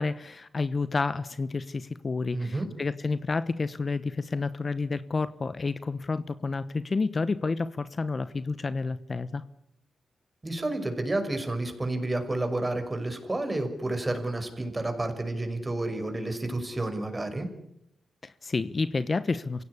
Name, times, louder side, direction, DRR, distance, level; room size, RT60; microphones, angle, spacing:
voice 1, 0.0-9.4 18.2-19.6, left 4 dB, 40° left, 14 dB, 1.0 m, -30 dB
voice 2, 2.3-2.7 10.4-17.5, right 2 dB, 25° right, 7 dB, 5.7 m, -30 dB
27.0 x 17.0 x 9.8 m, 0.79 s
cardioid pair, 75°, 0 cm